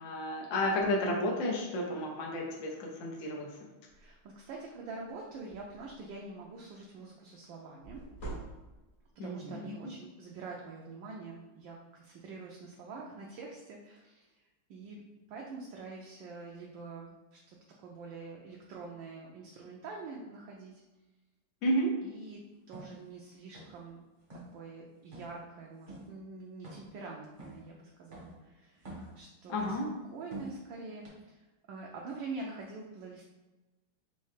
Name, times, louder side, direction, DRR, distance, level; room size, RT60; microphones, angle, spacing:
voice 1, 0.0-3.5 9.2-9.7 21.6-21.9 29.5-29.9, equal, 80° left, -1 dB, 0.7 m, -32 dB
sound 1, 3.9-4.2 4.6-4.8 5.0-6.1 7.8-9.1, right 2 dB, 45° left, 0.9 m, -45 dB
voice 2, 3.9-8.0 9.2-14.3 14.7-15.0 15.3-20.8 22.0-22.4 22.7-24.0 24.5-29.7 30.1-33.3, right 3 dB, 75° right, -1 dB, 1.2 m, -45 dB
sound 2, 22.7-22.9 23.5-23.9 24.2-24.5 25.1-25.4 25.9-26.1 26.6-27.0 27.4-27.7 28.1-28.4 28.8-29.2 29.6-29.9 30.3-30.6 31.0-31.1, right 1 dB, 35° right, 0.7 m, -46 dB
4.3 x 2.8 x 3.2 m, 1.2 s
omnidirectional pair, 2.3 m